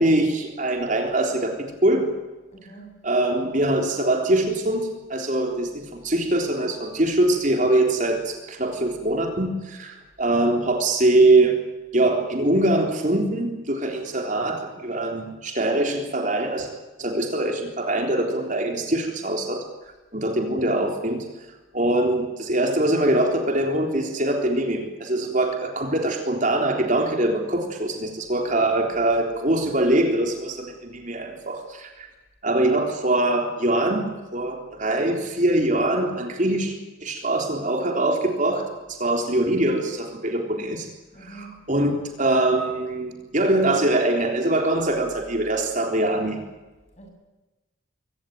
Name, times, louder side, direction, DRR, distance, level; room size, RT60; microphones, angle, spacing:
voice 1, 0.0-2.1 3.0-11.6 11.9-16.7 17.0-19.6 20.1-21.3 21.7-32.1 32.4-40.9 41.2-46.4, right 1 dB, 40° right, 3 dB, 3.6 m, -23 dB
voice 2, 2.5-3.0 28.3-28.4 28.7-29.0 41.1-41.6 47.0-47.1, right 3 dB, 35° left, 2 dB, 7.8 m, -45 dB
23.5 x 18.5 x 9.4 m, 1.1 s
head